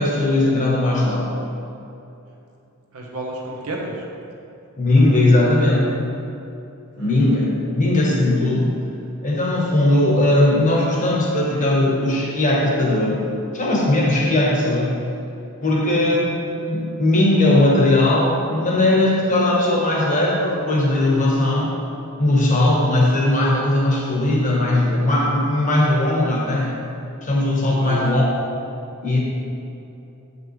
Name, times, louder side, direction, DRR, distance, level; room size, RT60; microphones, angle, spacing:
voice 1, 0.0-1.3 4.8-5.9 7.0-8.8 9.2-13.3 13.5-15.0 15.6-21.7 22.2-26.7 27.2-28.3 29.0-29.2, left 1 dB, 35° left, -3 dB, 1.2 m, -18 dB
voice 2, 2.9-4.0 7.0-7.1 15.6-15.9 27.7-28.1, right 2 dB, 80° right, -1 dB, 1.1 m, -31 dB
7.7 x 5.3 x 3.2 m, 2.8 s
head